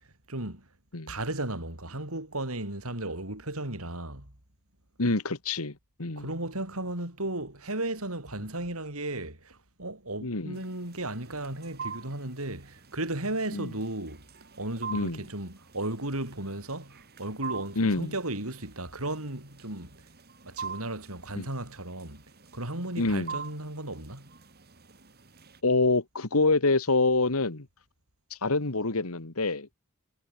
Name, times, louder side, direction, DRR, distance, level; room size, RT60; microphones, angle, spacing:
voice 1, 0.3-0.7 1.1-4.3 6.2-14.3 14.6-20.1 20.4-22.2 22.5-24.3, right 1 dB, 85° right, 7.4 m, -35 dB
voice 2, 5.0-6.3 10.2-10.6 13.5-13.7 14.9-15.2 17.8-18.1 21.4-21.5 23.0-23.4 25.6-27.7 28.3-29.7, left 3 dB, 90° left, 1.9 m, -26 dB
sound 1, 10.5-25.6, right 6 dB, 45° right, 3.3 m, -45 dB
head